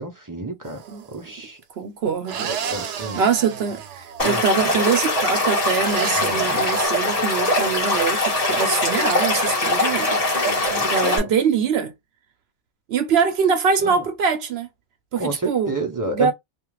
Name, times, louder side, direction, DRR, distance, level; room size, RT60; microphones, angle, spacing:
voice 1, 0.0-0.8 1.1-1.6 2.4-3.2 4.2-4.4 6.1-6.6 11.0-11.3 15.2-16.3, right 2 dB, 30° right, 0.4 m, -29 dB
sound 1, 0.6-1.2 2.2-4.7 5.9-6.9, right 7 dB, 90° right, 0.9 m, -33 dB
voice 2, 1.8-2.5 2.9-11.9 12.9-14.7 15.1-15.7 16.0-16.3, right 6 dB, 65° right, 0.8 m, -23 dB
Stream / Liquid, 4.2-11.2, left 2 dB, 35° left, 1.1 m, -22 dB
2.4 x 2.3 x 3.0 m
omnidirectional pair, 1.2 m